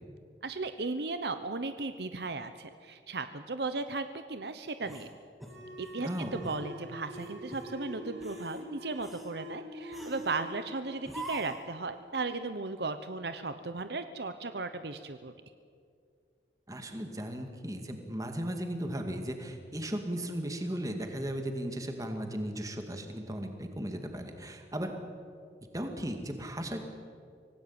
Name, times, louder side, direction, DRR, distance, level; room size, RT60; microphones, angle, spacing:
voice 1, 0.4-5.1 5.8-15.3, right 3 dB, 65° right, 10 dB, 0.9 m, -36 dB
sound 1, 4.8-6.0 6.4-6.7 7.1-7.7 8.1-8.6 9.0-9.3 9.9-10.4 11.0-11.7, right 1 dB, ahead, 2.4 m, -45 dB
sound 2, 5.4-12.6, equal, 85° right, 3.7 m, -45 dB
voice 2, 6.0-6.5 16.7-24.9 25.7-26.9, equal, 20° right, 5 dB, 2.2 m, -36 dB
25.0 x 18.0 x 8.8 m, 2.2 s
head